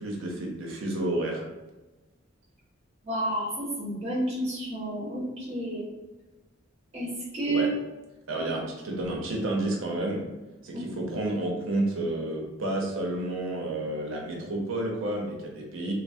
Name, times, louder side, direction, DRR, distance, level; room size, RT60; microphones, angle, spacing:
voice 1, 0.0-1.4 7.5-7.7 8.3-10.2 10.6-15.9, right 1 dB, 70° right, -1 dB, 0.7 m, -30 dB
voice 2, 3.0-5.8 6.9-7.7, right 1 dB, 25° right, -7 dB, 0.6 m, -30 dB
3.2 x 2.0 x 2.6 m, 1.1 s
head